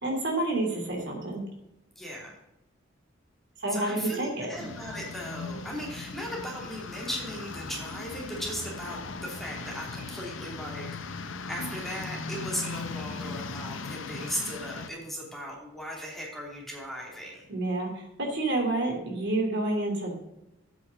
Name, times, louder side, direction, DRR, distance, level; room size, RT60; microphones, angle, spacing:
voice 1, 0.0-1.4 3.6-4.5 17.5-20.1, right 2 dB, 60° right, 1 dB, 3.0 m, -29 dB
voice 2, 2.0-2.4 3.7-17.5, equal, ahead, -3 dB, 2.9 m, -37 dB
sound 1, 4.5-14.9, left 4 dB, 70° left, 0.7 m, -38 dB
8.3 x 6.3 x 6.4 m, 0.89 s
head